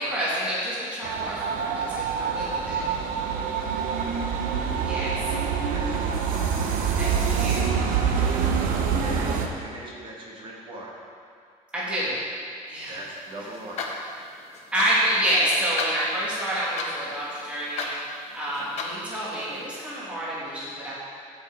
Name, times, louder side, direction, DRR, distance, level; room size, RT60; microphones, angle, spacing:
voice 1, 0.0-2.8 4.8-5.3 7.0-7.9 11.7-12.2 12.7-13.0 14.7-17.9 18.3-21.0, equal, 10° right, -9 dB, 1.9 m, -28 dB
sound 1, 1.0-9.5, right 6 dB, 75° right, 0.9 m, -26 dB
voice 2, 5.7-6.1 8.1-9.3 9.6-11.0 12.9-13.8 18.4-18.7, right 2 dB, 35° right, -3 dB, 1.7 m, -41 dB
sound 2, 13.0-19.7, left 3 dB, 50° left, 1.0 m, -37 dB
15.0 x 5.5 x 3.7 m, 2.3 s
cardioid pair, 175°, 14 cm